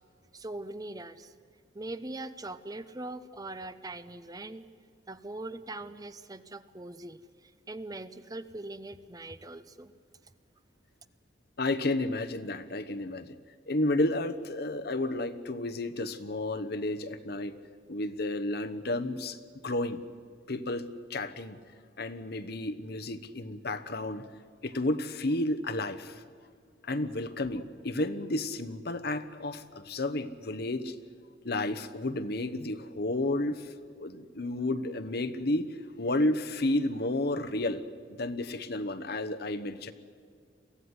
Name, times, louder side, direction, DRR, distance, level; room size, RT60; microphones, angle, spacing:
voice 1, 0.3-1.3 1.7-4.7 5.1-9.9, right 2 dB, 20° right, 12 dB, 0.8 m, -41 dB
voice 2, 11.6-13.3 13.7-17.5 17.9-19.4 19.6-20.0 20.5-21.6 22.0-24.2 24.6-26.2 26.8-30.9 31.4-37.8 38.2-39.9, left 2 dB, 60° left, 11 dB, 1.1 m, -31 dB
23.0 x 16.0 x 9.6 m, 2.2 s
head